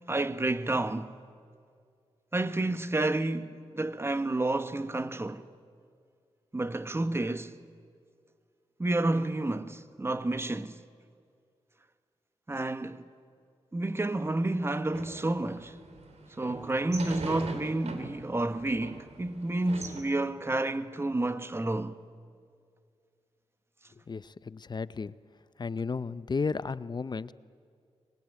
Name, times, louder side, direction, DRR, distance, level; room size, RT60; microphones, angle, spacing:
voice 1, 0.1-1.1 2.3-5.5 6.5-7.6 8.8-10.8 12.5-13.1 13.7-15.8 16.4-22.0, right 2 dB, 25° right, 1.2 m, -30 dB
sound 1, 14.9-20.0, right 3 dB, 85° right, 2.7 m, -42 dB
voice 2, 24.1-25.1 25.6-27.3, left 4 dB, 40° left, 0.6 m, -33 dB
24.5 x 21.0 x 9.2 m
cardioid pair, 70°, 11 cm